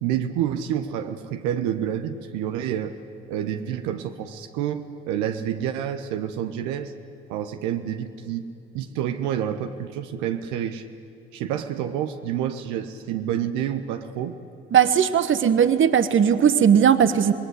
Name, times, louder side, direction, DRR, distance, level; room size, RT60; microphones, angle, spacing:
voice 1, 0.0-2.9 3.3-6.9 7.3-8.5 8.7-10.8 11.3-14.3, right 10 dB, 70° right, 7 dB, 1.1 m, -28 dB
voice 2, 14.7-17.3, right 8 dB, 40° right, 12 dB, 1.3 m, -18 dB
26.5 x 20.5 x 8.1 m, 2.6 s
hypercardioid pair, 60°, 30 cm